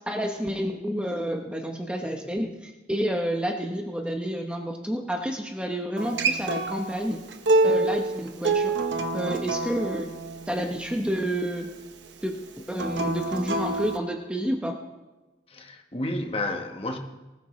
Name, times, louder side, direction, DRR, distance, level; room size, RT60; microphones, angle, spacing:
voice 1, 0.1-7.2 7.6-8.8 9.1-10.2 10.5-11.8 12.2-12.4 12.7-14.8, equal, 5° right, 2 dB, 0.8 m, -29 dB
Acoustic guitar, 6.0-11.2 12.7-14.0, right 2 dB, 80° right, 1.0 m, -27 dB
voice 2, 15.5-17.0, left 2 dB, 30° left, 4 dB, 1.1 m, -31 dB
19.5 x 13.5 x 3.1 m, 1.1 s
head